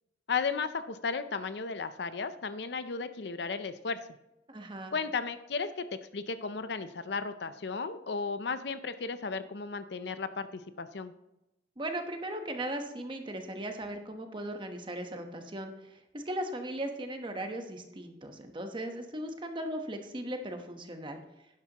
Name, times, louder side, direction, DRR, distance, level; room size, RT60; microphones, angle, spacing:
voice 1, 0.3-4.0 4.9-5.7 6.1-11.1, left 4 dB, 65° left, 11 dB, 0.6 m, -34 dB
voice 2, 4.5-4.9 11.8-21.2, right 1 dB, 25° right, 5 dB, 1.1 m, -38 dB
11.5 x 10.5 x 3.0 m, 0.92 s
head